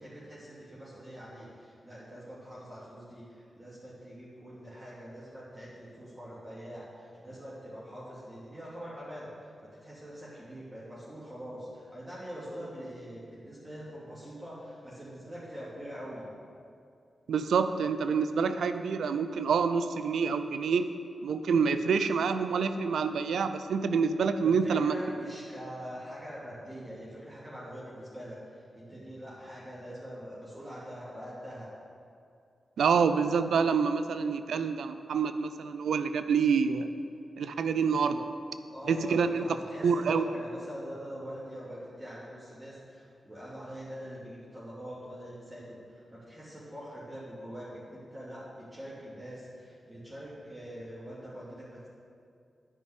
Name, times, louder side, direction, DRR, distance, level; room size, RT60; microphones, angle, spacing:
voice 1, 0.0-9.5 9.8-16.3 24.4-31.7 38.7-51.9, equal, 20° right, -9 dB, 2.9 m, -44 dB
voice 2, 17.3-20.9 21.2-24.9 32.8-36.9 37.4-38.2 38.9-39.4 39.8-40.2, right 5 dB, 85° right, 10 dB, 0.5 m, -27 dB
9.9 x 5.2 x 8.2 m, 2.4 s
cardioid pair, 50°, 0 cm